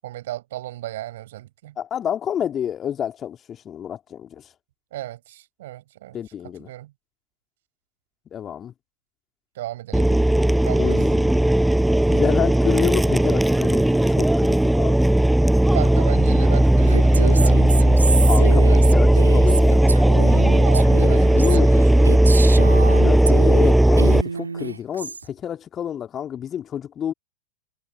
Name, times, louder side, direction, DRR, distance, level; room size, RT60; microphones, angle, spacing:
voice 1, 0.0-1.8 4.9-6.2 6.6-6.9 9.5-10.2 10.6-11.0 15.7-18.0 18.4-19.0 20.6-22.1, right 15 dB, 55° right, 6.2 m, -34 dB
voice 2, 1.8-4.4 6.1-6.7 8.3-8.7 10.8-11.4 12.1-15.1 18.2-20.1 21.0-22.1 23.0-27.1, left 9 dB, 25° left, 2.3 m, -29 dB
sound 1, 9.9-24.2, right 1 dB, 5° right, 6.3 m, -16 dB
Female speech woman speaking, 16.9-23.7 24.0-25.2, right 4 dB, 75° right, 1.8 m, -29 dB
figure-of-eight pair, 90°, 0 cm